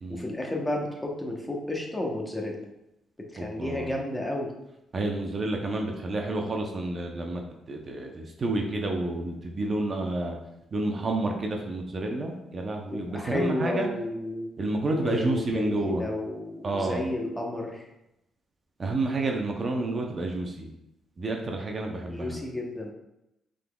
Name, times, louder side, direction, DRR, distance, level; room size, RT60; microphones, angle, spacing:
voice 1, 0.1-2.6 3.3-4.5 12.9-14.5 14.8-17.8 22.1-22.9, left 1 dB, 10° left, 0 dB, 1.0 m, -32 dB
voice 2, 3.4-3.9 4.9-7.4 7.7-10.4 10.7-13.9 14.6-16.0 16.6-17.0 18.8-20.7 21.2-22.4, right 2 dB, 40° right, 2 dB, 0.7 m, -30 dB
5.6 x 3.8 x 2.3 m, 0.87 s
cardioid pair, 90°, 0 cm